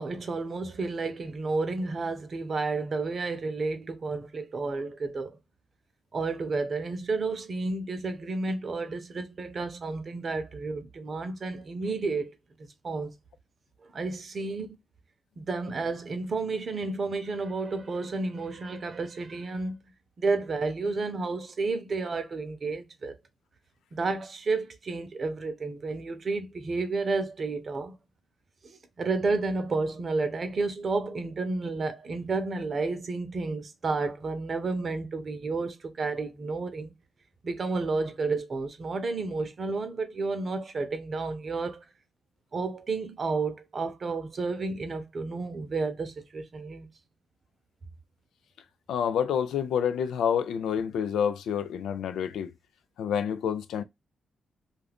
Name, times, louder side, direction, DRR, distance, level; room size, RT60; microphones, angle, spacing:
voice 1, 0.0-5.4 6.1-13.1 13.8-14.8 15.4-19.8 20.2-23.2 23.9-28.0 28.6-36.9 37.4-41.8 42.5-46.9, right 3 dB, 50° right, 0.7 m, -31 dB
voice 2, 48.9-52.5 53.0-53.8, left 8 dB, 85° left, 0.3 m, -28 dB
2.6 x 2.4 x 3.3 m
cardioid pair, 65°, 0 cm